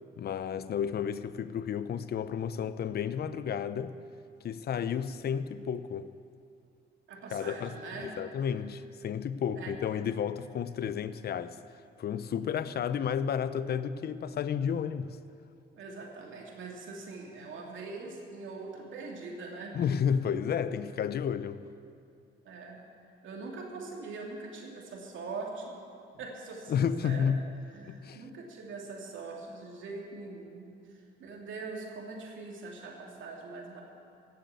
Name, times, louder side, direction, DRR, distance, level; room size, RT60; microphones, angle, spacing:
voice 1, 0.2-4.0 4.4-6.1 7.3-7.7 8.0-11.6 12.0-15.2 19.7-21.6 26.7-27.5 27.9-28.2, left 7 dB, 55° left, 13 dB, 0.6 m, -32 dB
voice 2, 7.1-8.1 9.6-9.7 15.7-19.8 22.4-22.8 23.2-25.7 26.2-27.2 27.7-33.8, right 3 dB, 75° right, -1 dB, 2.7 m, -42 dB
16.0 x 7.7 x 8.2 m, 2.5 s
cardioid pair, 90°, 20 cm